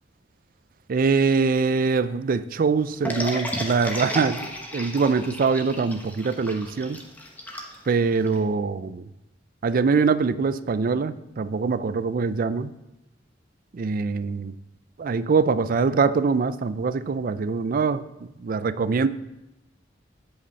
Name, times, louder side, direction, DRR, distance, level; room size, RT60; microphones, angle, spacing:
voice 1, 0.9-7.0 7.9-9.0 9.6-12.7 13.7-14.5 15.0-19.1, right 4 dB, 50° right, 15 dB, 0.4 m, -23 dB
sound 1, 3.0-8.4, equal, 10° left, 1.1 m, -33 dB
8.5 x 8.0 x 4.0 m, 0.92 s
head